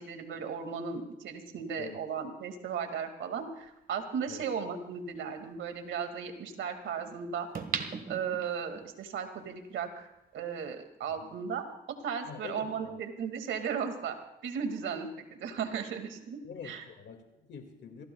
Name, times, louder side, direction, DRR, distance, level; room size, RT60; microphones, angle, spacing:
voice 1, 0.0-7.5 8.1-10.1 10.3-11.7 12.0-14.2 14.4-16.8, right 6 dB, 75° right, 6 dB, 2.2 m, -36 dB
sound 1, 3.9-4.0 7.5-8.9 9.4-9.5, right 5 dB, 45° right, 1.6 m, -36 dB
voice 2, 12.3-13.0 16.4-18.0, left 6 dB, 65° left, 5 dB, 2.2 m, -45 dB
27.5 x 16.5 x 2.3 m, 0.92 s
cardioid pair, 90°, 20 cm